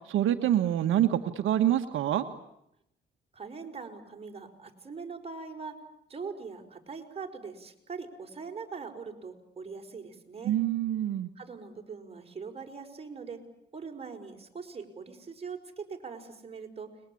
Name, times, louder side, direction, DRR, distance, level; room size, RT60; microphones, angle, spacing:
voice 1, 0.1-2.3 10.4-11.3, right 11 dB, 80° right, 5 dB, 1.6 m, -26 dB
voice 2, 3.3-5.8 6.1-10.6 11.4-13.4 13.7-16.9, right 5 dB, 30° right, 2 dB, 5.4 m, -42 dB
30.0 x 22.0 x 8.7 m, 0.80 s
cardioid pair, 90°, 20 cm